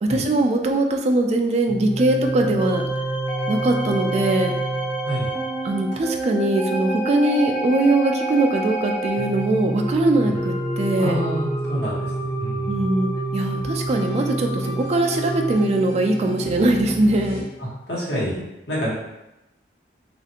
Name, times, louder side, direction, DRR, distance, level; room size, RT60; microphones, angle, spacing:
voice 1, 0.0-2.8 3.5-4.5 5.6-11.2 12.7-17.5, right 2 dB, 40° right, 3 dB, 0.3 m, -21 dB
sound 1, 1.7-17.4, right 2 dB, 15° left, 0.6 m, -27 dB
voice 2, 11.0-12.1 12.4-12.8 17.9-18.9, equal, 75° left, -6 dB, 1.2 m, -27 dB
3.2 x 2.5 x 2.8 m, 0.94 s
head